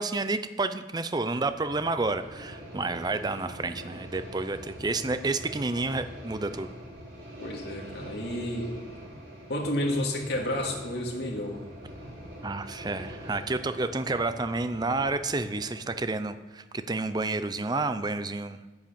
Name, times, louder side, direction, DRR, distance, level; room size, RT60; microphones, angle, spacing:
voice 1, 0.0-6.7 12.4-18.6, right 3 dB, 20° right, 11 dB, 0.5 m, -30 dB
sound 1, 1.4-16.1, equal, 75° right, 4.7 m, -44 dB
voice 2, 7.4-8.7 9.5-11.6, left 1 dB, 65° left, -1 dB, 2.4 m, -30 dB
10.5 x 7.9 x 7.0 m, 1.2 s
head